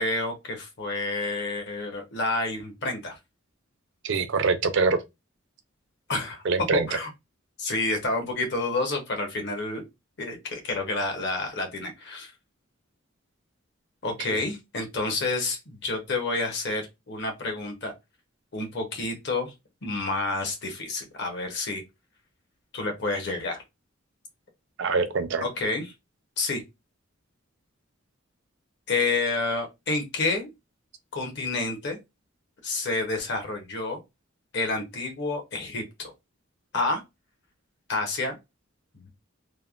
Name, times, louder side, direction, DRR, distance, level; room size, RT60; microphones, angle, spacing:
voice 1, 0.0-3.2 6.1-6.4 6.7-7.1 7.6-9.8 10.2-12.3 14.0-17.9 18.5-19.5 19.8-21.8 22.7-23.6 25.4-25.9 26.4-26.6 28.9-30.5 31.1-32.0 32.6-34.0 34.5-36.1 36.7-37.0 37.9-38.4 38.9-39.1, left 3 dB, 60° left, 0.8 m, -29 dB
voice 2, 4.0-5.0 6.4-6.9 14.3-14.4 24.8-25.4, right 4 dB, 65° right, 0.4 m, -24 dB
3.2 x 2.1 x 2.3 m
head